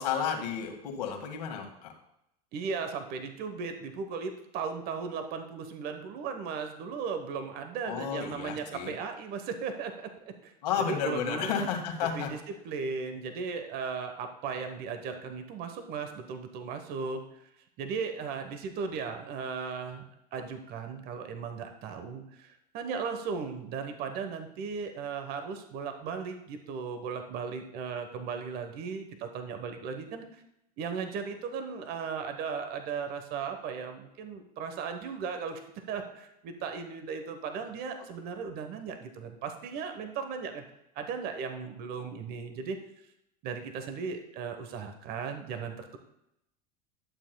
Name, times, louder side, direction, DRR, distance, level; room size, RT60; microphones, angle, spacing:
voice 1, 0.0-1.9 7.8-8.9 10.6-12.3, left 7 dB, 80° left, 1 dB, 1.9 m, -32 dB
voice 2, 2.5-10.5 10.9-11.5 12.0-12.3 12.6-17.5 17.8-20.0 20.3-30.4 30.8-40.6 40.9-42.8 43.4-46.0, right 5 dB, 50° right, 7 dB, 1.1 m, -36 dB
12.0 x 7.4 x 2.3 m, 0.82 s
hypercardioid pair, 100°, 20 cm